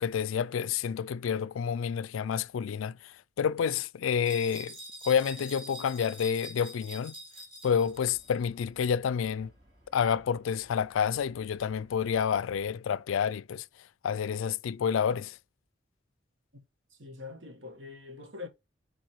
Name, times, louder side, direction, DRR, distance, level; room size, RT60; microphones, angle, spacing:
voice 1, 0.0-4.8 5.0-7.2 7.6-9.5 9.9-13.7 14.0-15.4, left 7 dB, 80° left, 0.3 m, -29 dB
sound 1, 4.3-8.4, right 1 dB, 25° right, 2.4 m, -45 dB
sound 2, 7.7-12.7, equal, 45° right, 3.5 m, -61 dB
voice 2, 16.9-18.5, left 4 dB, 65° right, 1.4 m, -44 dB
8.9 x 4.3 x 3.1 m
head